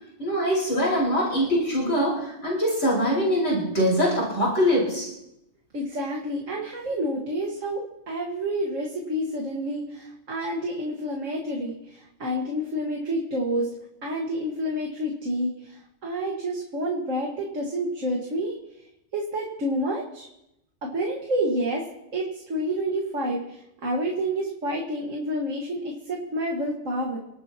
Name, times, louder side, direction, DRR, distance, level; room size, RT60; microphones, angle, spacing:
voice 1, 0.2-5.1, equal, 65° left, -6 dB, 5.3 m, -23 dB
voice 2, 5.7-13.7 14.0-18.5 19.1-20.3 20.9-21.8 22.1-23.4 23.8-27.2, equal, 75° right, -1 dB, 2.1 m, -29 dB
29.0 x 12.0 x 2.9 m, 0.85 s
omnidirectional pair, 1.3 m